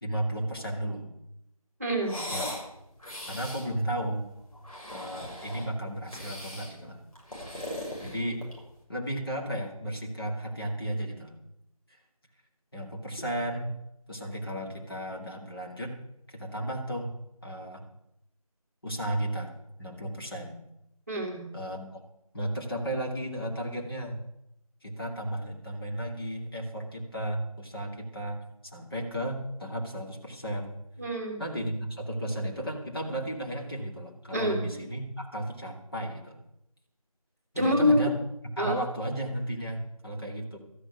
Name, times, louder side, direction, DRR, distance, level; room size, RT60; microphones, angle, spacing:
voice 1, 0.0-1.1 2.3-2.5 3.3-4.3 4.9-7.0 8.0-8.4 8.9-11.4 11.9-12.0 12.7-13.7 14.1-16.0 16.3-17.1 17.4-17.8 18.8-20.6 21.5-22.0 22.3-24.2 24.8-28.4 28.7-30.8 31.4-36.4 37.5-40.6, right 1 dB, 40° left, -1 dB, 2.4 m, -34 dB
voice 2, 1.8-2.2 21.1-21.5 31.0-31.4 34.3-34.6 37.6-38.0 38.6-38.8, left 1 dB, 25° right, 1 dB, 1.7 m, -26 dB
sound 1, 2.0-2.7 3.0-3.7 4.5-5.7 6.1-6.7 7.2-8.7, left 1 dB, 75° left, 6.6 m, -38 dB
13.0 x 6.5 x 9.7 m, 0.82 s
figure-of-eight pair, 175°, 19 cm